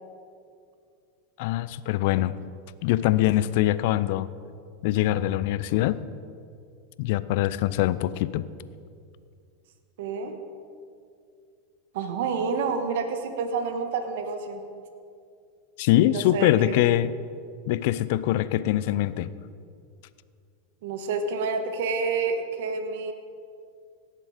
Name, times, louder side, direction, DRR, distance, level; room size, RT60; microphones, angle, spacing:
voice 1, 1.4-2.3 2.8-4.3 4.8-6.0 7.0-8.5 15.8-17.1 17.7-19.3, left 14 dB, 65° left, 16 dB, 0.5 m, -23 dB
voice 2, 10.0-10.4 11.9-14.6 16.0-16.8 20.8-23.1, right 4 dB, 70° right, 7 dB, 1.2 m, -29 dB
17.5 x 7.6 x 5.0 m, 2.3 s
hypercardioid pair, 100°, 0 cm